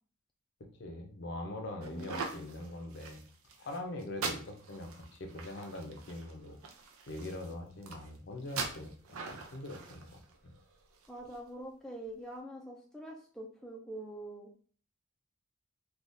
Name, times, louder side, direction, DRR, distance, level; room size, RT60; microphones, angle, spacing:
voice 1, 0.8-3.2 3.6-6.6 7.1-10.5, left 1 dB, 55° left, 3 dB, 0.5 m, -43 dB
voice 2, 1.8-2.5 11.1-14.6, right 1 dB, ahead, -1 dB, 0.3 m, -45 dB
sound 1, 1.8-11.4, right 4 dB, 85° right, 0.5 m, -43 dB
3.4 x 2.3 x 2.6 m, 0.43 s
head